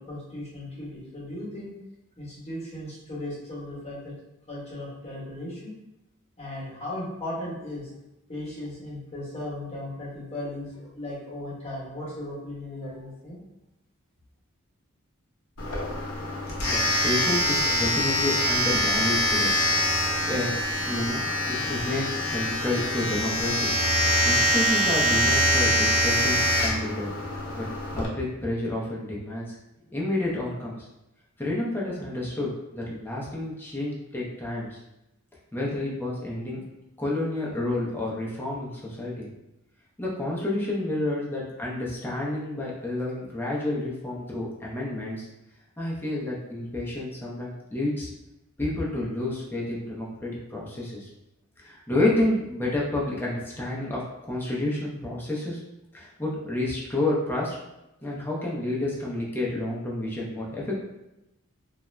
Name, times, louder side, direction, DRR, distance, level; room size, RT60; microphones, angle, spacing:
voice 1, 0.0-1.7 2.2-4.1 4.5-5.7 6.4-7.9 8.3-13.4, left 1 dB, 30° left, -7 dB, 1.0 m, -36 dB
Domestic sounds home sounds, 15.6-28.0, equal, 80° left, 0.7 m, -24 dB
voice 2, 16.6-19.6 20.3-20.5 20.9-23.7 24.0-27.1 27.6-27.7 27.9-29.6 29.9-30.9 31.4-34.8 35.5-36.6 37.0-39.3 40.0-45.3 45.8-48.1 48.6-51.1 51.6-55.6 55.9-57.6 58.0-60.8, left 1 dB, 10° left, -5 dB, 0.5 m, -30 dB
2.3 x 2.0 x 3.1 m, 0.91 s
head